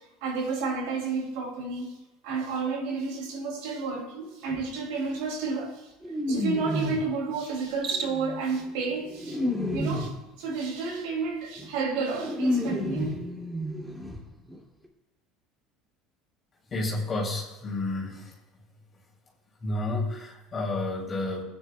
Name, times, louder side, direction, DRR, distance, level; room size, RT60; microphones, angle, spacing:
voice 1, 0.2-2.0 2.2-5.9 6.3-9.4 9.7-13.2, right 4 dB, 75° right, 2 dB, 2.3 m, -31 dB
sound 1, 4.5-4.7 6.0-7.2 7.9-10.3 11.6-11.7 12.0-14.2 14.5-14.6 14.8-14.9, left 1 dB, 5° right, 2.1 m, -31 dB
Cricket, 7.6-8.4, right 5 dB, 40° right, 0.9 m, -34 dB
voice 2, 16.7-18.3 19.6-21.4, left 2 dB, 35° left, -2 dB, 2.5 m, -30 dB
15.5 x 9.2 x 2.2 m, 1.0 s
supercardioid pair, 95°, 0 cm